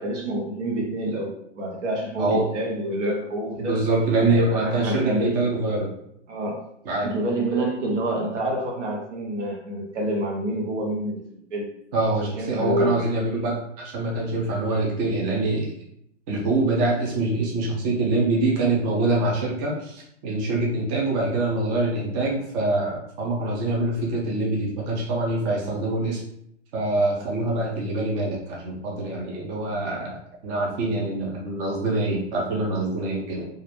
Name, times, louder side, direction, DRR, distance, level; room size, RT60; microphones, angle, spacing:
voice 1, 0.0-3.8 4.2-5.4 6.3-6.6 7.0-11.2 11.5-11.7 12.2-13.1, right 1 dB, 70° right, -1 dB, 0.8 m, -27 dB
voice 2, 3.6-5.9 6.8-7.1 11.9-15.7 16.3-26.2 26.7-30.2 30.4-33.5, right 2 dB, 35° right, -3 dB, 0.6 m, -24 dB
2.4 x 2.0 x 2.9 m, 0.73 s
hypercardioid pair, 130°, 37 cm